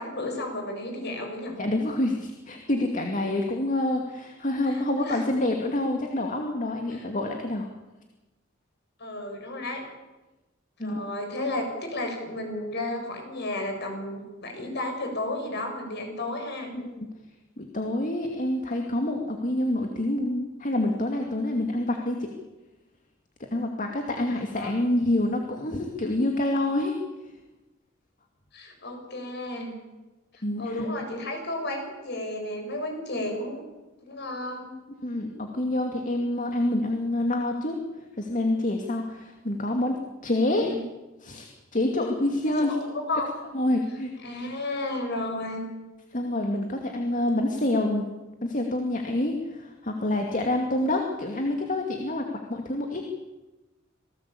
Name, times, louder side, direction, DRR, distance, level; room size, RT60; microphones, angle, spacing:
voice 1, 0.0-1.6 4.6-5.2 6.9-7.0 9.0-9.8 10.8-16.7 24.3-24.7 28.5-29.7 30.6-33.6 34.0-34.7 40.4-40.8 42.4-43.3 44.2-45.6 50.7-50.8, left 1 dB, 55° left, 3 dB, 7.2 m, -33 dB
voice 2, 1.6-7.7 10.8-11.0 16.7-17.1 17.6-22.3 23.5-27.0 30.4-31.1 35.0-37.8 38.2-40.0 40.2-40.8 41.2-42.8 43.5-44.5 46.1-48.1 48.4-53.1, left 1 dB, 40° left, 3 dB, 2.5 m, -27 dB
27.5 x 18.5 x 8.6 m, 1.1 s
head